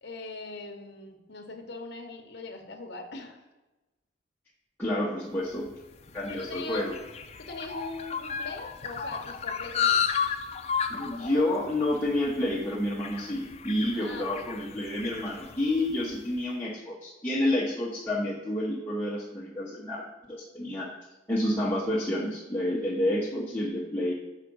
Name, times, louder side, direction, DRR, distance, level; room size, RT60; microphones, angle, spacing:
voice 1, 0.0-3.4 6.3-6.9 7.4-10.1 13.9-14.5, left 3 dB, 55° left, 5 dB, 0.9 m, -41 dB
voice 2, 4.8-5.7 6.1-6.9 10.9-20.0 20.3-20.9 21.3-24.1, left 1 dB, 10° left, -7 dB, 0.9 m, -29 dB
sound 1, 5.6-16.2, left 7 dB, 30° left, 0.4 m, -33 dB
4.8 x 4.8 x 6.2 m, 1.1 s
head